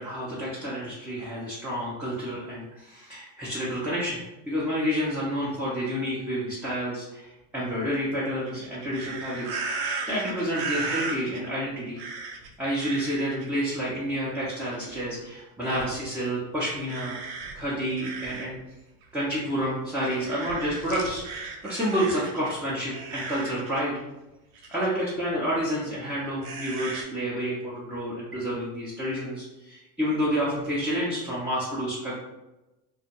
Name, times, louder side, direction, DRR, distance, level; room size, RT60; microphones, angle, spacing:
voice 1, 0.0-4.2 4.5-9.6 10.1-12.0 12.6-17.2 17.5-18.5 19.1-24.0 24.7-32.2, equal, 5° right, -9 dB, 0.6 m, -29 dB
sound 1, 8.5-11.4 12.0-12.5 12.8-13.5 14.6-15.2 15.7-15.9 16.9-18.6 19.0-19.1 19.9-22.5 22.9-23.8 24.5-24.9 26.4-27.0, right 4 dB, 65° right, 0.7 m, -36 dB
2.4 x 2.1 x 2.9 m, 1.0 s
hypercardioid pair, 80°, 48 cm